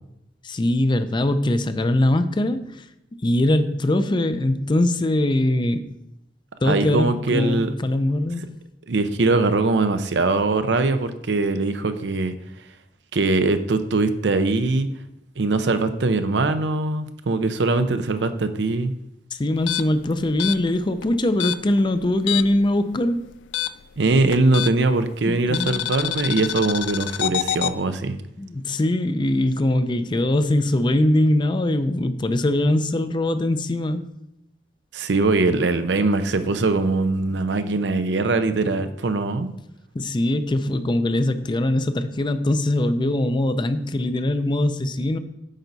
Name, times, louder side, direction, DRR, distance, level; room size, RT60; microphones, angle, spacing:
voice 1, 0.4-2.9 3.2-5.8 6.6-8.5 19.3-23.3 25.3-25.8 28.4-34.0 39.9-45.2, left 1 dB, 25° left, 10 dB, 0.5 m, -22 dB
voice 2, 6.6-7.7 8.9-12.3 13.1-14.9 15.4-18.9 24.0-28.2 34.9-39.5, right 3 dB, 80° right, 10 dB, 0.6 m, -21 dB
sound 1, 19.6-22.7 22.9-25.0 25.5-27.8, left 11 dB, 80° left, 0.3 m, -27 dB
9.0 x 5.4 x 4.0 m, 0.83 s
head